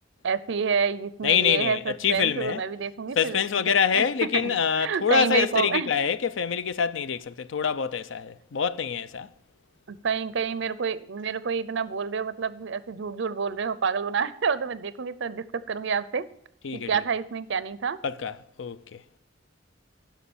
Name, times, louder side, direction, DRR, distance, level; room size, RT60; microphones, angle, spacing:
voice 1, 0.2-5.9 9.9-16.3 16.7-18.0, right 6 dB, 65° right, 0.6 m, -28 dB
voice 2, 1.2-2.6 3.2-9.3 16.6-16.9 18.0-18.3 18.6-18.8, left 7 dB, 75° left, 0.5 m, -25 dB
11.5 x 5.9 x 7.1 m
head